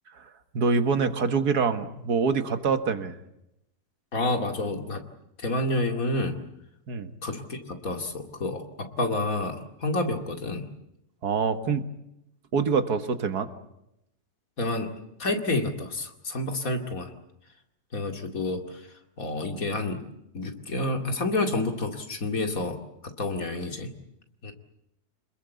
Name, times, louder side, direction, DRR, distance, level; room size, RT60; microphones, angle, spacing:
voice 1, 0.5-3.2 6.9-7.1 11.2-11.9 12.5-13.5, right 5 dB, 85° right, 9 dB, 2.1 m, -25 dB
voice 2, 4.1-5.0 5.4-6.4 7.2-10.6 14.6-14.9 15.2-17.1 17.9-18.8 19.2-20.0 20.3-22.8 23.0-23.9 24.4-24.5, left 2 dB, 60° left, 5 dB, 2.7 m, -29 dB
26.5 x 21.5 x 8.2 m, 0.83 s
omnidirectional pair, 1.6 m